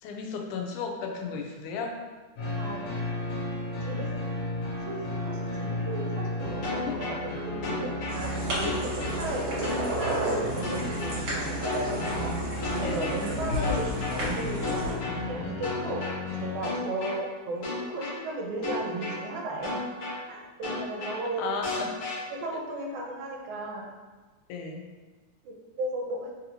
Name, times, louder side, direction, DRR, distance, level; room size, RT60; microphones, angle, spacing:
voice 1, 0.0-2.0 6.6-7.0 12.8-13.2 21.4-21.9 24.5-24.8, left 5 dB, 85° left, 2 dB, 2.0 m, -34 dB
sound 1, 2.4-16.6, left 1 dB, 70° left, 1.7 m, -34 dB
voice 2, 2.6-2.9 3.8-4.1 4.8-12.3 12.8-16.0 16.4-19.8 20.3-21.5 22.3-23.9 25.5-26.3, right 2 dB, 80° right, 0 dB, 2.0 m, -35 dB
sound 2, 6.6-7.2 7.6-8.2 8.6-9.2 9.6-10.2 10.6-11.2 11.6-12.2 12.6-13.2 13.6-14.2 14.6-15.2 15.6-16.2 16.6-17.2 17.6-18.2 18.6-19.2 19.6-20.2 20.6-21.2 21.6-22.2, left 3 dB, 50° left, 1.8 m, -33 dB
sound 3, 8.1-14.9, equal, 60° right, 2.2 m, -33 dB
4.8 x 2.7 x 2.7 m, 1.3 s
omnidirectional pair, 3.4 m